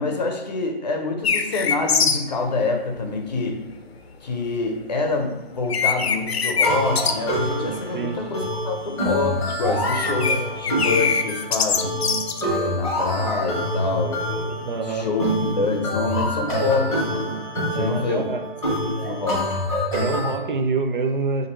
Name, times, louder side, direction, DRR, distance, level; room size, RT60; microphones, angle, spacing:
voice 1, 0.0-3.6 4.2-12.0 12.5-14.6 14.9-15.2 15.6-17.2 17.7-18.3 19.0-19.5, left 3 dB, 45° left, 3 dB, 0.6 m, -26 dB
sound 1, 1.2-2.2 5.2-5.3 5.7-6.7 6.9-7.1 7.4-8.0 8.3-8.5 9.7-10.4 10.6-12.4, left 6 dB, 85° left, 0.6 m, -22 dB
sound 2, 6.6-20.3, equal, ahead, 0.5 m, -26 dB
voice 2, 14.6-15.1 17.7-18.4 19.9-21.5, right 4 dB, 55° right, 6 dB, 0.5 m, -26 dB
5.9 x 2.6 x 2.9 m, 1.1 s
hypercardioid pair, 170°, 30 cm